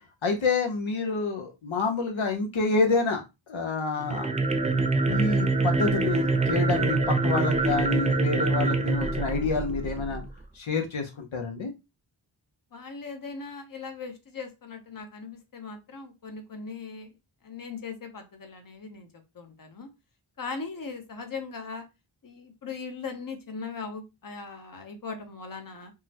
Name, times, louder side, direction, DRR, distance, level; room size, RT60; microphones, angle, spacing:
voice 1, 0.2-3.2 3.5-4.3 5.1-10.2 10.5-11.7, left 4 dB, 80° left, 3 dB, 0.7 m, -28 dB
sound 1, 4.0-10.3, right 3 dB, 15° right, 0.3 m, -25 dB
voice 2, 12.7-17.1 17.4-19.1 19.3-19.9 20.4-21.8 22.2-25.9, left 4 dB, 45° left, 6 dB, 0.8 m, -39 dB
3.7 x 2.0 x 2.8 m, 0.25 s
wide cardioid pair, 55°, 47 cm